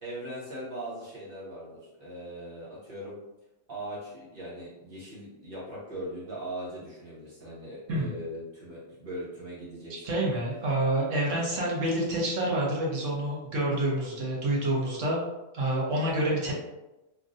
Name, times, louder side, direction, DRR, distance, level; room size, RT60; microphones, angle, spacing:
voice 1, 0.0-3.2 3.7-10.4, right 1 dB, 45° right, -8 dB, 1.3 m, -40 dB
voice 2, 9.9-15.2 15.5-16.5, right 1 dB, 80° right, -4 dB, 1.2 m, -28 dB
3.1 x 2.4 x 2.5 m, 0.98 s
omnidirectional pair, 1.3 m